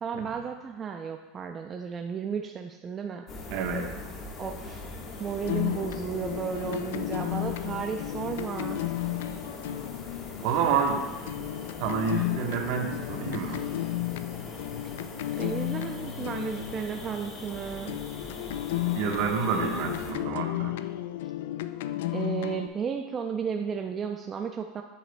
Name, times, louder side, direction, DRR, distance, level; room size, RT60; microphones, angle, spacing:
voice 1, 0.0-3.3 4.4-4.8 5.2-8.8 15.3-18.0 22.1-24.8, right 7 dB, 30° right, 4 dB, 0.5 m, -33 dB
sound 1, 3.3-20.1, left 2 dB, 40° left, 1.4 m, -41 dB
voice 2, 3.5-3.9 10.4-11.0 11.8-13.7 18.9-20.8, right 6 dB, 65° right, 2 dB, 1.2 m, -28 dB
sound 2, 5.4-17.5 17.9-22.7, left 14 dB, 75° left, 0.3 m, -33 dB
8.5 x 7.9 x 2.3 m, 1.1 s
hypercardioid pair, 100°, 0 cm